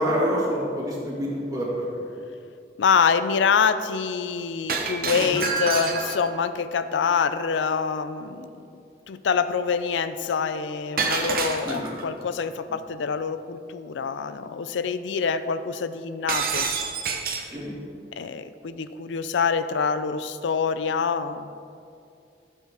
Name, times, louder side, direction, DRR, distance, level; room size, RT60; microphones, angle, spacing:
voice 1, 0.0-1.8 5.1-5.3 11.6-11.9 17.5-17.7, equal, 20° right, -4 dB, 1.9 m, -27 dB
voice 2, 2.8-8.5 9.1-16.7 17.3-17.4 18.1-21.5, left 6 dB, 90° left, 12 dB, 0.4 m, -25 dB
Shatter, 4.7-6.4 11.0-12.0 16.3-17.5, right 4 dB, 55° right, 0.8 m, -27 dB
12.5 x 7.4 x 3.5 m, 2.5 s
head